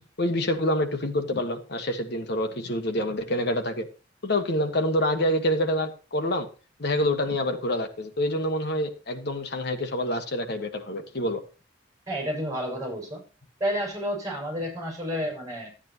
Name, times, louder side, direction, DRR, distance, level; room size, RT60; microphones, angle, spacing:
voice 1, 0.2-3.9 4.2-6.5 6.8-11.4, left 1 dB, 60° left, 6 dB, 1.4 m, -27 dB
voice 2, 12.1-13.2 13.6-15.7, equal, 20° right, 0 dB, 6.2 m, -30 dB
12.0 x 8.9 x 2.9 m, 0.35 s
head